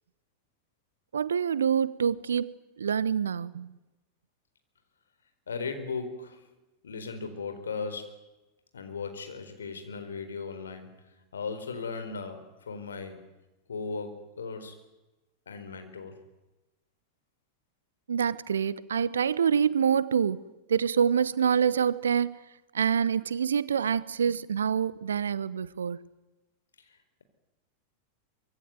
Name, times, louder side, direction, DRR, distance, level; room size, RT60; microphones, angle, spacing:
voice 1, 1.1-3.8 18.1-20.4 20.7-22.4 22.7-26.1, right 7 dB, 70° right, 1.0 m, -26 dB
voice 2, 5.5-6.5 6.8-8.2 8.7-13.2 13.7-14.7 15.5-16.2 26.8-27.2, left 4 dB, 70° left, 4.3 m, -37 dB
25.0 x 23.0 x 9.3 m
figure-of-eight pair, 90°, 0 cm